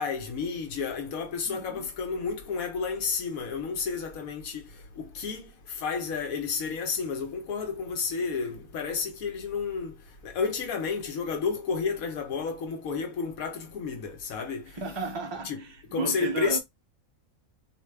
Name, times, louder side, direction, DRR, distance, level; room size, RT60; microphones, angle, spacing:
voice 1, 0.0-4.6 5.0-9.9 10.2-14.6 15.4-15.6 15.9-16.6, left 5 dB, 85° left, 1.3 m, -31 dB
voice 2, 1.5-1.9 14.7-16.6, right 3 dB, 45° right, 0.3 m, -34 dB
4.3 x 2.7 x 3.2 m
omnidirectional pair, 1.4 m